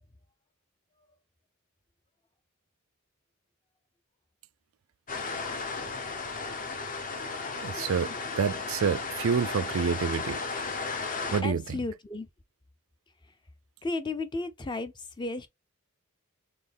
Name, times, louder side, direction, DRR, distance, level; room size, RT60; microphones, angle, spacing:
sound 1, 5.1-11.4, left 4 dB, 40° left, 0.8 m, -34 dB
voice 1, 7.6-10.4 11.3-11.6, right 6 dB, 70° right, 0.4 m, -28 dB
voice 2, 11.4-12.3 13.2-13.3 13.8-15.5, left 2 dB, 20° left, 0.5 m, -34 dB
4.3 x 3.6 x 3.4 m
head